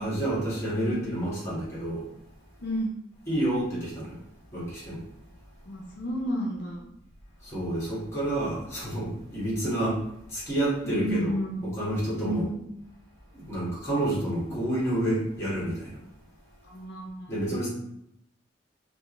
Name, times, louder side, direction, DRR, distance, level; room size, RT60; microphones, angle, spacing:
voice 1, 0.0-2.1 3.3-4.2 4.5-5.1 7.4-11.4 11.6-12.5 13.3-16.0 17.3-17.7, right 1 dB, 15° left, -7 dB, 1.4 m, -29 dB
voice 2, 2.6-3.0 5.7-6.8 10.8-11.6 12.2-12.6 16.6-17.3, equal, 65° left, -1 dB, 0.5 m, -31 dB
3.5 x 2.5 x 3.0 m, 0.79 s
head